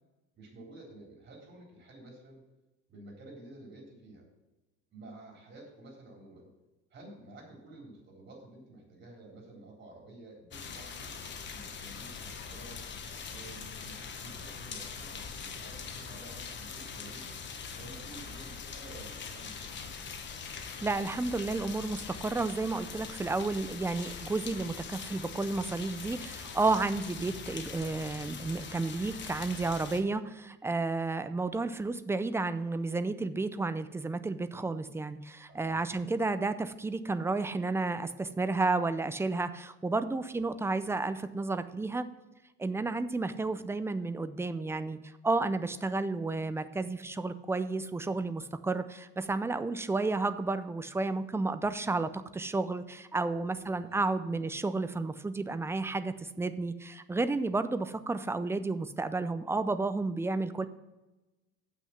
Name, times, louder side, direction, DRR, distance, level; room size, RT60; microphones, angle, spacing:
voice 1, 0.3-2.4 2.9-4.3 4.9-6.5 6.9-12.8 13.3-17.4 17.7-20.0 35.5-36.0 43.5-43.7 53.6-54.1, right 2 dB, 35° right, -1 dB, 3.8 m, -51 dB
sound 1, 10.5-30.0, left 6 dB, 40° left, 1.1 m, -42 dB
voice 2, 20.6-42.1 42.6-45.0 45.2-60.7, right 3 dB, 10° right, 12 dB, 0.4 m, -32 dB
7.7 x 6.1 x 7.1 m, 1.1 s
cardioid pair, 135°, 29 cm